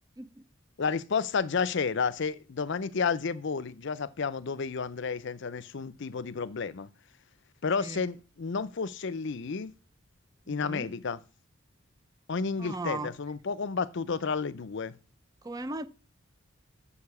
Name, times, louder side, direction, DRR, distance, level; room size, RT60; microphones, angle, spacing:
voice 1, 0.8-6.9 7.6-9.7 10.5-11.2 12.3-15.0, left 5 dB, 60° left, 0.5 m, -31 dB
voice 2, 10.5-10.9 12.6-13.1 15.4-15.9, right 2 dB, 20° right, 0.5 m, -37 dB
7.0 x 6.8 x 7.0 m
head